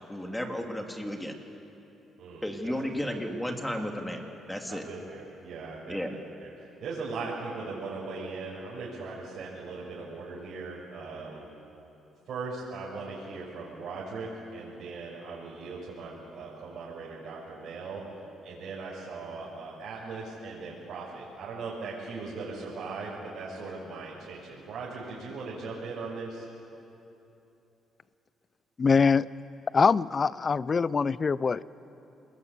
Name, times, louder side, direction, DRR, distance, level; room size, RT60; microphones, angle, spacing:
voice 1, 0.1-1.3 2.4-4.8 5.9-6.1, equal, 5° left, 3 dB, 2.9 m, -33 dB
voice 2, 2.2-2.7 3.0-3.2 4.7-11.5 12.3-18.0 18.4-26.5, right 3 dB, 70° right, -5 dB, 5.9 m, -39 dB
voice 3, 28.8-29.3 29.7-31.6, left 5 dB, 35° left, 19 dB, 0.6 m, -23 dB
27.5 x 21.5 x 8.3 m, 2.9 s
cardioid pair, 90°, 0 cm